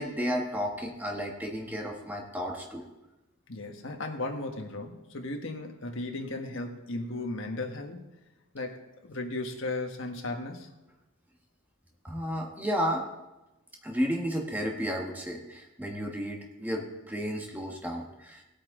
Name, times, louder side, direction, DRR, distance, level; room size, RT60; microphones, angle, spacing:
voice 1, 0.0-2.8 12.0-13.0 13.8-18.4, equal, 10° right, 0 dB, 1.5 m, -32 dB
voice 2, 3.5-8.0 8.5-10.7, left 2 dB, 60° left, 3 dB, 1.4 m, -36 dB
17.5 x 8.6 x 3.8 m, 1.0 s
head